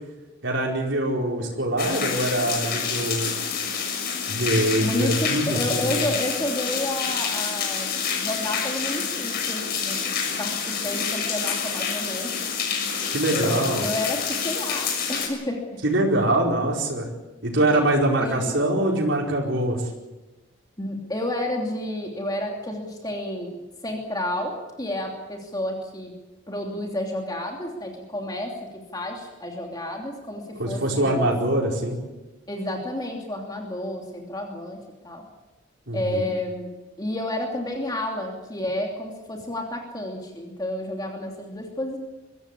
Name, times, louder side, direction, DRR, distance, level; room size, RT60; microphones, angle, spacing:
voice 1, 0.4-3.3 4.3-6.1 13.1-13.9 15.8-17.1 17.4-19.8 30.6-32.0 35.9-36.2, right 1 dB, 70° right, -2 dB, 4.9 m, -23 dB
sound 1, 1.8-15.3, left 6 dB, 55° left, 6.4 m, -28 dB
voice 2, 4.8-10.0 10.4-12.3 13.3-15.7 18.2-18.7 20.8-23.6 23.8-26.1 26.5-31.3 32.5-34.8 35.0-35.2 35.9-36.7 37.0-42.0, left 1 dB, 20° left, 0 dB, 2.9 m, -30 dB
24.5 x 15.0 x 8.6 m, 1.1 s
head